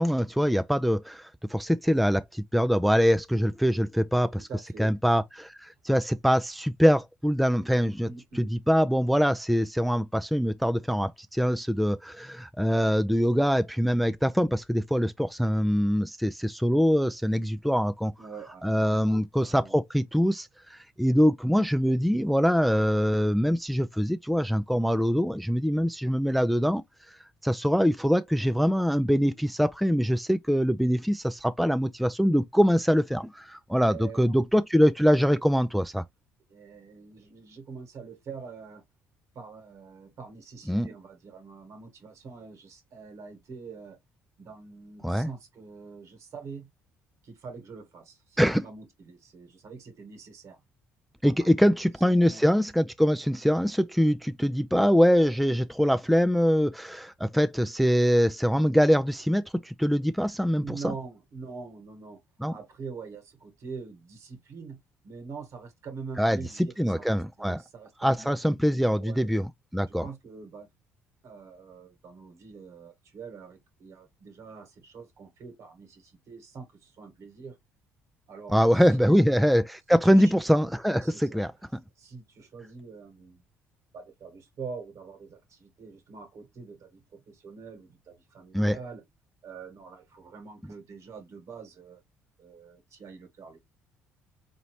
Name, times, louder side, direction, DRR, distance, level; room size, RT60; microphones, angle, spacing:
voice 1, 0.0-4.5 4.8-8.1 8.4-18.1 18.6-26.8 27.4-36.0 40.7-40.9 45.0-45.3 48.4-48.6 51.2-60.6 62.4-62.6 66.2-66.4 66.8-67.6 68.0-69.5 69.7-70.0 78.5-81.5 88.5-88.8, equal, ahead, 0.4 m, -23 dB
voice 2, 4.3-5.0 8.0-8.5 18.2-19.8 33.8-34.4 36.5-38.8 39.3-44.0 44.4-46.7 47.2-50.6 51.2-52.4 60.6-62.2 62.5-69.3 69.9-70.7 71.2-77.6 78.3-79.5 79.9-80.3 81.0-81.4 82.0-83.4 83.9-89.0 89.4-92.0 92.4-93.6, right 5 dB, 60° right, 1.5 m, -44 dB
3.9 x 2.8 x 3.1 m
hypercardioid pair, 60°, 6 cm